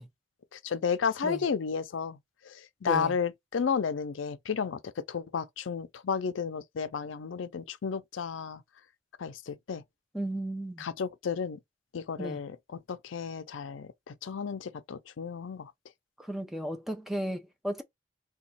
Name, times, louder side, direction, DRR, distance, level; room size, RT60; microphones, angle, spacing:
voice 1, 0.5-2.2 2.4-8.6 9.2-9.8 10.8-11.6 11.9-15.7, left 6 dB, 90° left, 0.5 m, -33 dB
voice 2, 2.8-3.2 10.1-10.9 12.2-12.4 16.2-17.8, right 1 dB, ahead, 0.5 m, -34 dB
2.9 x 2.3 x 4.1 m
head